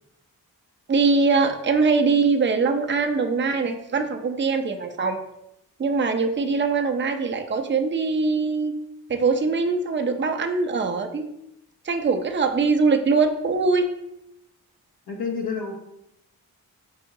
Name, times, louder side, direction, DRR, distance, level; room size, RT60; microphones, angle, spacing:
voice 1, 0.9-5.2 5.8-8.7 9.1-11.3 11.8-13.9, right 4 dB, 30° right, 5 dB, 0.5 m, -22 dB
voice 2, 15.1-15.8, left 5 dB, 85° left, -2 dB, 0.9 m, -29 dB
5.6 x 2.8 x 2.6 m, 0.82 s
cardioid pair, 55°, 37 cm